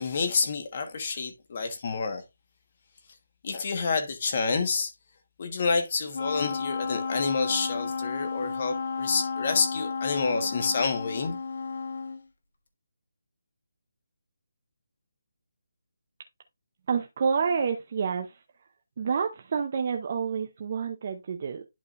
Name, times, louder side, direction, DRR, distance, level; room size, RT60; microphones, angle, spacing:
voice 1, 0.0-2.2 3.4-4.9 5.4-11.4, left 4 dB, 30° left, 1.3 m, -28 dB
Wind instrument woodwind instrument, 6.1-12.2, left 5 dB, 50° left, 1.2 m, -33 dB
voice 2, 16.9-18.4 19.0-21.6, right 6 dB, 30° right, 0.6 m, -28 dB
10.5 x 4.9 x 2.5 m
hypercardioid pair, 175°, 0 cm